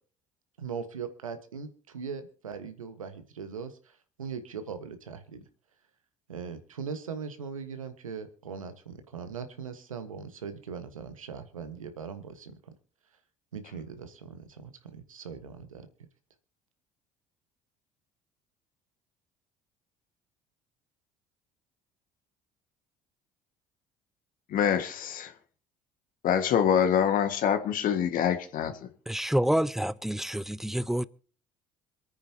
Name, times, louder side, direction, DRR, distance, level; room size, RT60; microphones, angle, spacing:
voice 1, 0.6-5.4 6.3-12.6 13.5-16.1, right 6 dB, 90° right, 1.4 m, -40 dB
voice 2, 24.5-25.3 26.2-28.9, left 8 dB, 55° left, 1.8 m, -25 dB
voice 3, 29.1-31.0, equal, ahead, 0.7 m, -28 dB
26.5 x 9.3 x 2.9 m
hypercardioid pair, 60°, 17 cm